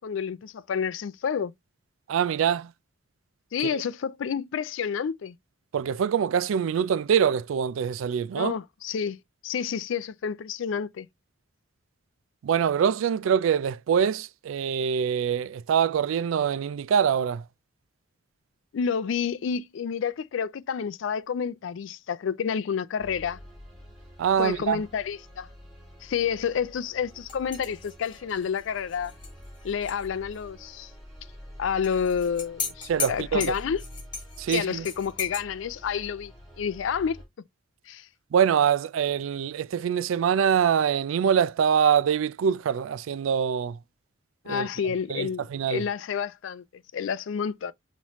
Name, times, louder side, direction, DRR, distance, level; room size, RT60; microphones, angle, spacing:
voice 1, 0.0-1.5 3.5-5.4 8.3-9.2 9.4-11.1 18.7-23.4 24.4-25.5 26.0-29.1 29.6-30.9 31.6-33.8 34.5-36.3 36.6-37.2 37.9-38.1 44.4-47.7, left 7 dB, 70° left, 0.4 m, -29 dB
voice 2, 2.1-2.7 3.7-3.8 5.7-8.6 12.4-17.4 24.2-24.8 32.9-33.5 34.4-34.9 38.3-43.8 44.5-45.9, right 8 dB, 80° right, 0.3 m, -24 dB
sound 1, 23.0-37.2, equal, ahead, 2.5 m, -47 dB
sound 2, 27.3-30.1 30.3-30.4 31.8-35.4, left 5 dB, 25° left, 1.4 m, -37 dB
5.5 x 3.1 x 3.0 m
head